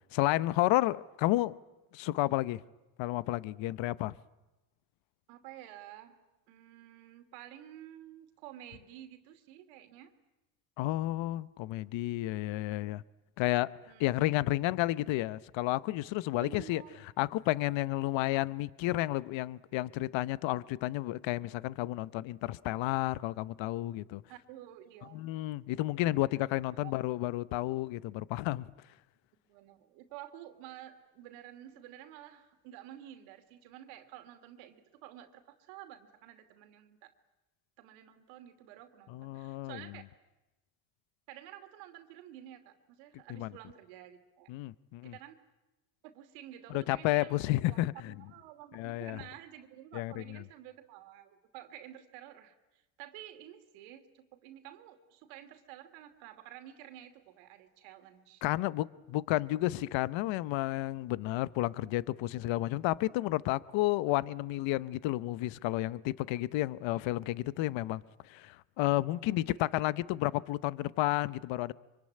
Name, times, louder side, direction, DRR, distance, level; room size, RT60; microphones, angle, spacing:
voice 1, 0.1-1.6 1.9-2.6 3.0-4.1 10.8-13.0 13.4-13.7 14.0-16.8 17.2-24.2 25.1-28.7 39.1-39.8 43.3-43.5 44.5-45.1 46.7-48.1 48.7-49.2 49.9-50.2 58.4-71.7, left 17 dB, 65° left, 0.9 m, -31 dB
voice 2, 5.3-6.2 6.5-10.1 13.9-14.2 16.4-17.0 24.3-25.3 26.7-27.0 29.5-37.1 37.8-40.0 41.3-44.5 45.0-45.3 46.1-58.5 69.2-69.9, right 12 dB, 85° right, 2.8 m, -51 dB
24.5 x 24.5 x 9.8 m
supercardioid pair, 85°, 48 cm